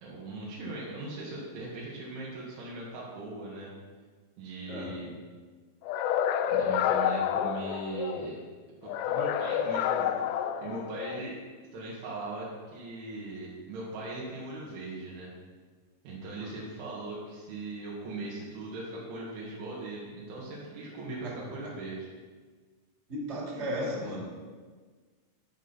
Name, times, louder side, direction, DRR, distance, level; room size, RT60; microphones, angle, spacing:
voice 1, 0.0-3.7 4.4-5.2 6.5-8.4 8.8-11.4 11.7-15.3 16.0-22.1, right 2 dB, 80° right, -6 dB, 4.3 m, -39 dB
sound 1, 5.9-8.3 8.9-11.3, left 9 dB, 85° left, 2.5 m, -29 dB
voice 2, 23.1-24.2, equal, 20° right, -4 dB, 1.8 m, -35 dB
16.0 x 6.4 x 4.1 m, 1.5 s
omnidirectional pair, 5.4 m